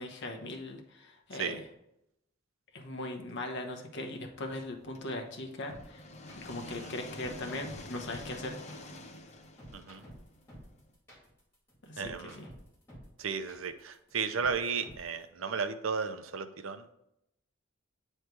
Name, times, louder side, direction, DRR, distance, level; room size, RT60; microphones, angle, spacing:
voice 1, 0.0-1.6 2.7-6.0 6.4-8.6 11.9-12.4, left 2 dB, 60° left, 2 dB, 1.0 m, -39 dB
sound 1, 4.9-10.8, left 1 dB, 35° left, 0.7 m, -47 dB
sound 2, 5.7-15.2, equal, 15° left, 2.2 m, -51 dB
voice 2, 9.7-10.0 12.0-12.4 13.2-16.9, right 5 dB, 90° right, 10 dB, 0.6 m, -34 dB
8.1 x 3.2 x 4.5 m, 0.81 s
head